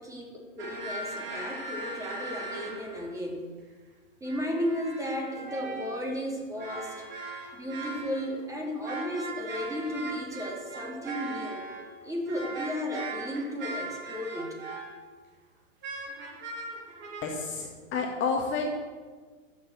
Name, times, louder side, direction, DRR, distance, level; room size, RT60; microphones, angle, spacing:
voice 1, 0.0-3.4 4.2-7.0 7.5-11.6 12.0-14.6, left 1 dB, 10° right, -1 dB, 3.2 m, -34 dB
sound 1, 0.6-3.1 4.2-6.1 6.6-8.4 8.8-15.0 15.8-17.4, right 2 dB, 30° right, 3.2 m, -39 dB
voice 2, 17.2-18.7, left 4 dB, 30° left, 1 dB, 1.8 m, -30 dB
14.0 x 7.2 x 8.0 m, 1.5 s
hypercardioid pair, 120°, 39 cm